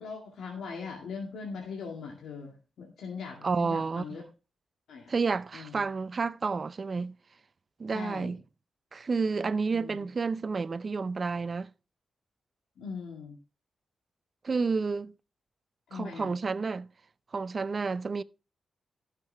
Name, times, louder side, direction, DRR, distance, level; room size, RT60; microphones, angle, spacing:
voice 1, 0.0-4.2 4.9-5.1 5.5-5.8 7.9-8.3 9.7-10.0 12.8-13.4 15.9-16.3, left 5 dB, 90° left, 2.2 m, -40 dB
voice 2, 3.4-4.0 5.1-7.1 7.8-8.4 8.9-11.7 14.4-15.1 15.9-16.9 17.3-18.2, right 4 dB, 45° right, 0.5 m, -30 dB
14.0 x 6.7 x 3.4 m
cardioid pair, 85°, 0 cm